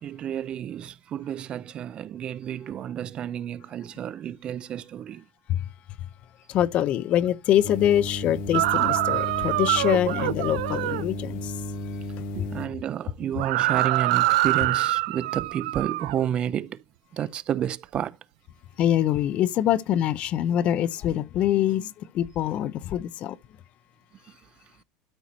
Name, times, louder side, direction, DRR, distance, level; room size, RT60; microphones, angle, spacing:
voice 1, 0.0-5.2 12.4-16.8 17.1-18.2, right 10 dB, 30° right, 0.5 m, -30 dB
voice 2, 6.5-11.5 12.4-12.5 18.8-23.4, left 11 dB, 40° left, 0.6 m, -24 dB
sound 1, 7.6-12.7, left 1 dB, 60° left, 2.1 m, -34 dB
sound 2, 8.5-11.1 13.4-16.3, right 17 dB, 80° right, 0.5 m, -25 dB
12.5 x 4.7 x 4.0 m
supercardioid pair, 145°, 3 cm